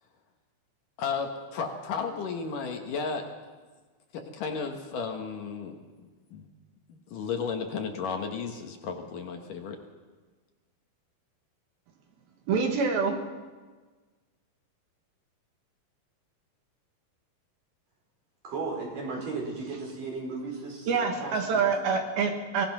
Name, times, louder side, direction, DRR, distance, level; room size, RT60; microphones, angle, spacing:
voice 1, 1.0-3.3 4.1-6.5 6.9-9.8, left 5 dB, 65° left, 4 dB, 2.7 m, -34 dB
voice 2, 12.5-13.2 20.9-22.7, right 5 dB, 70° right, 4 dB, 3.4 m, -26 dB
voice 3, 18.4-21.6, right 3 dB, 55° right, -1 dB, 6.5 m, -35 dB
24.0 x 18.5 x 6.1 m, 1.4 s
omnidirectional pair, 4.6 m